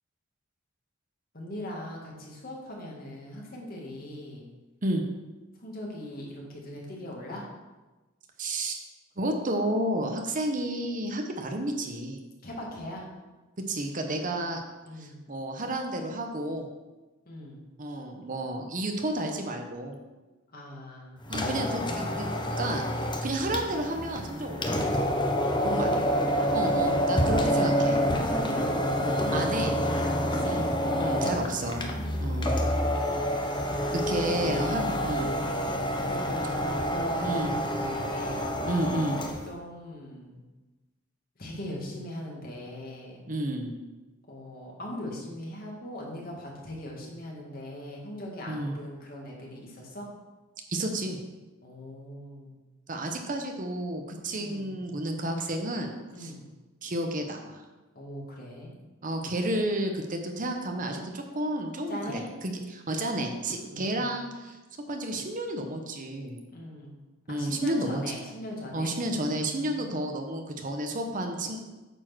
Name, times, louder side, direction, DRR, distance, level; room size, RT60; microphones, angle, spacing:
voice 1, 1.3-4.5 5.6-7.5 12.4-13.1 14.9-15.2 17.3-17.6 20.5-21.2 25.4-26.1 27.2-27.6 28.1-29.7 30.0-30.6 31.0-33.0 34.1-34.9 36.0-38.5 39.5-40.4 41.4-43.2 44.3-50.1 51.6-52.6 54.3-54.7 56.1-56.4 57.9-58.7 61.9-62.3 63.5-64.2 66.5-66.9 67.3-69.0 69.7-70.0, left 1 dB, 45° left, -2 dB, 2.0 m, -40 dB
voice 2, 8.4-8.8 9.2-12.2 13.7-14.6 15.0-16.7 17.8-20.0 21.3-22.3 22.6-22.8 23.2-24.7 25.6-25.9 26.5-28.0 29.3-29.7 30.4-30.7 31.0-31.9 32.2-32.5 33.9-35.3 37.2-37.5 38.6-39.2 43.3-43.7 48.5-48.7 50.7-51.2 52.9-55.9 56.2-56.3 56.8-57.6 59.0-64.6 64.9-66.4 67.3-68.0 68.7-71.6, right 1 dB, 40° right, 4 dB, 0.9 m, -31 dB
sound 1, 21.2-39.5, equal, 25° left, 0.8 m, -28 dB
9.0 x 4.5 x 6.1 m, 1.2 s
head